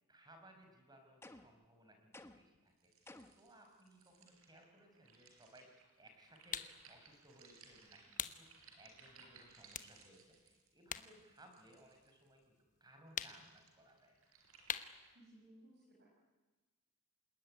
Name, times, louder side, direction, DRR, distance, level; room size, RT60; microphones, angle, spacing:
voice 1, 0.0-2.9 3.3-14.2, right 1 dB, 20° right, 4 dB, 5.1 m, -63 dB
sound 1, 1.2-1.7 2.1-2.6 3.1-3.5, left 2 dB, 10° left, 1.2 m, -56 dB
sound 2, 2.8-12.4 13.1-15.1, right 5 dB, 70° right, 5.2 m, -63 dB
sound 3, 6.5-6.8 8.2-8.4 8.9-9.1 9.7-11.1 11.4-12.5 13.1-13.6 14.7-15.0, left 8 dB, 35° left, 1.1 m, -43 dB
voice 2, 15.1-16.1, right 1 dB, 50° right, -3 dB, 7.3 m, -62 dB
28.5 x 20.0 x 9.8 m, 1.2 s
head